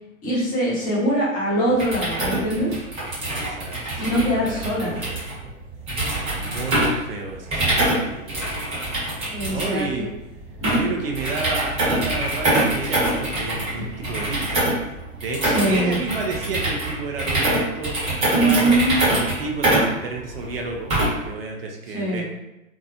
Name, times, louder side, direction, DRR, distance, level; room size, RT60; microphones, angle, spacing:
voice 1, 0.2-2.8 4.0-5.0 9.3-9.9 10.6-10.8 15.5-16.0 18.3-18.9 21.9-22.2, right 1 dB, 20° left, -8 dB, 1.1 m, -22 dB
sound 1, 1.7-21.3, right 1 dB, 15° right, 1.0 m, -25 dB
voice 2, 3.4-5.3 6.4-8.6 9.5-10.1 10.6-14.7 15.1-18.7 19.1-22.2, right 3 dB, 45° right, 1 dB, 0.5 m, -31 dB
2.7 x 2.3 x 2.4 m, 0.92 s
hypercardioid pair, 125°, 41 cm